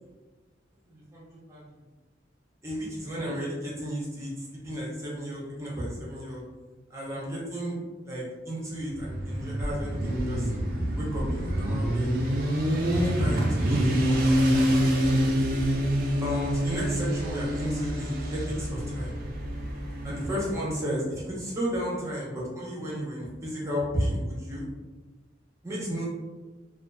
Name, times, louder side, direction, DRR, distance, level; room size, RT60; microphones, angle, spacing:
voice 1, 0.9-1.7 2.6-6.4 6.9-7.8 8.0-12.1 12.9-14.2 14.5-15.3 16.2-19.2 20.0-24.6 25.6-26.1, equal, 15° right, -6 dB, 0.7 m, -33 dB
Motorcycle, 8.9-20.6, equal, 50° right, 0.5 m, -27 dB
2.5 x 2.4 x 2.3 m, 1.2 s
head